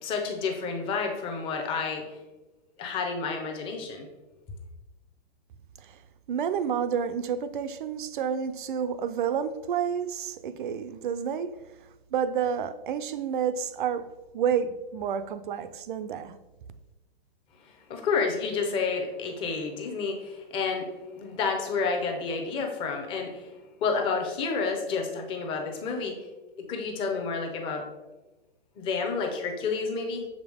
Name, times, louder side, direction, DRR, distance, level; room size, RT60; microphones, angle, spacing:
voice 1, 0.0-2.2 2.8-4.1 17.6-23.5 23.8-26.3 26.7-27.9 28.8-30.3, left 4 dB, 15° left, 0.7 m, -30 dB
voice 2, 6.3-11.5 12.1-14.1 14.3-16.4, right 7 dB, 55° right, 0.5 m, -29 dB
6.9 x 5.0 x 3.5 m
hypercardioid pair, 155°, 31 cm